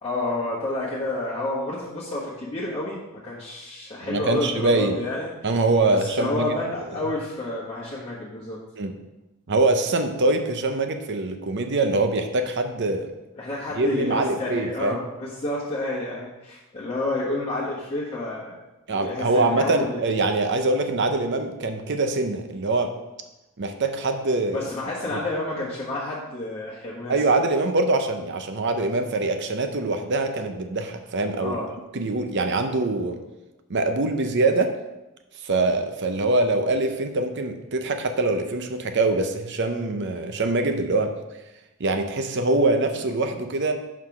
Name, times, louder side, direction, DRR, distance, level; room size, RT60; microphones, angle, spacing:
voice 1, 0.0-3.0 3.2-5.3 5.9-8.6 13.4-18.5 18.9-20.1 24.5-27.2 31.4-31.7, left 2 dB, 25° left, -7 dB, 1.2 m, -30 dB
voice 2, 4.0-5.0 5.4-6.5 8.8-8.9 9.5-13.1 13.8-15.0 18.9-22.9 23.6-24.6 25.1-25.2 27.1-31.6 31.9-33.2 33.7-34.7 35.4-41.1 41.8-43.7, right 2 dB, 55° right, 7 dB, 0.7 m, -23 dB
5.9 x 4.8 x 5.8 m, 1.0 s
head